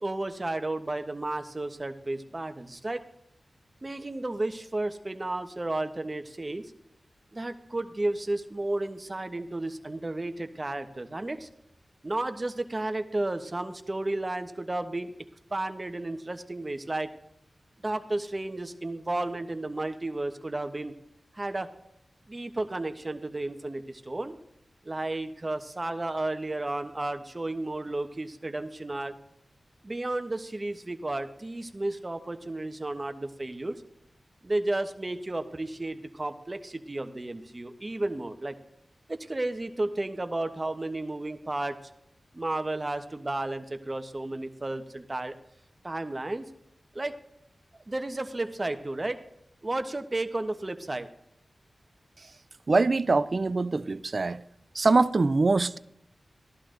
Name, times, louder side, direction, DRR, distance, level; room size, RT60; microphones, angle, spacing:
voice 1, 0.0-3.0 3.8-6.7 7.3-11.5 12.0-15.1 15.5-17.1 17.8-21.0 21.3-21.7 22.3-24.4 24.8-29.1 29.8-33.8 34.4-38.6 39.1-41.8 42.3-45.4 45.8-46.4 46.9-47.1 47.9-49.2 49.6-51.1, right 2 dB, 35° right, 1.2 m, -32 dB
voice 2, 52.7-54.4 54.8-55.8, right 3 dB, 55° right, 0.5 m, -23 dB
15.0 x 11.5 x 3.9 m
cardioid pair, 45°, 0 cm